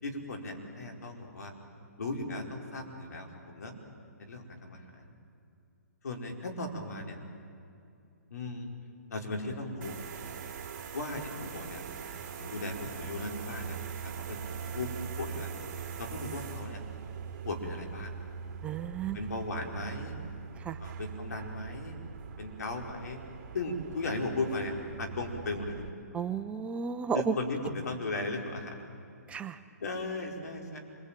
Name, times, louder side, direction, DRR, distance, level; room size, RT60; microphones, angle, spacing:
voice 1, 0.0-1.5 2.0-3.7 4.2-5.1 6.0-7.2 8.3-8.7 9.1-10.0 10.9-11.8 12.3-13.8 14.3-14.4 14.7-14.9 15.2-15.5 16.0-16.8 17.4-18.2 19.1-20.2 20.8-22.0 22.4-23.2 23.5-25.8 27.1-28.9 29.8-30.8, left 2 dB, 70° left, 2 dB, 4.8 m, -37 dB
sound 1, 9.8-25.9, right 7 dB, 35° right, 3.2 m, -42 dB
voice 2, 18.6-19.2 20.6-20.8 26.1-27.3 29.3-29.6, right 6 dB, 15° right, 10 dB, 0.7 m, -33 dB
27.0 x 22.0 x 9.1 m, 2.6 s
hypercardioid pair, 140°, 9 cm